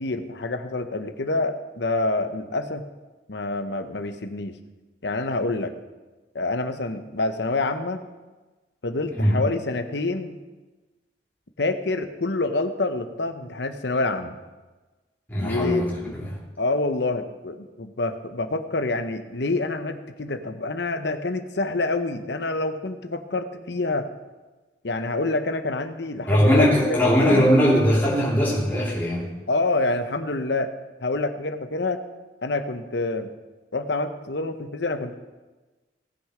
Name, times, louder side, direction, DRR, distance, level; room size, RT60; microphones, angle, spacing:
voice 1, 0.0-2.8 3.3-4.5 5.0-5.7 6.3-8.0 8.8-10.4 11.6-14.4 15.4-16.1 16.6-24.1 24.8-27.0 27.2-27.5 29.5-30.7 31.0-32.0 32.4-33.3 33.7-35.1, left 2 dB, 75° left, 9 dB, 0.9 m, -27 dB
voice 2, 15.3-16.2 26.3-29.4, equal, 10° left, -7 dB, 3.3 m, -20 dB
18.0 x 6.6 x 5.0 m, 1.2 s
head